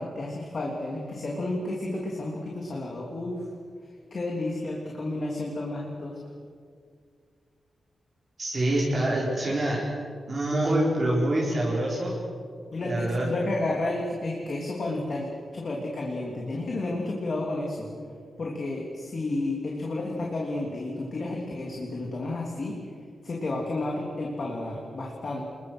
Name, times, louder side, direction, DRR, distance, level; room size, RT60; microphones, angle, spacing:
voice 1, 0.0-3.5 4.1-6.2 12.7-17.9 18.4-22.8 23.2-25.4, left 2 dB, 40° left, -2 dB, 3.2 m, -31 dB
voice 2, 8.4-9.8 10.3-12.1 12.8-13.2, right 1 dB, 35° right, -5 dB, 4.4 m, -25 dB
28.0 x 22.0 x 6.4 m, 2.2 s
wide cardioid pair, 175°, 0 cm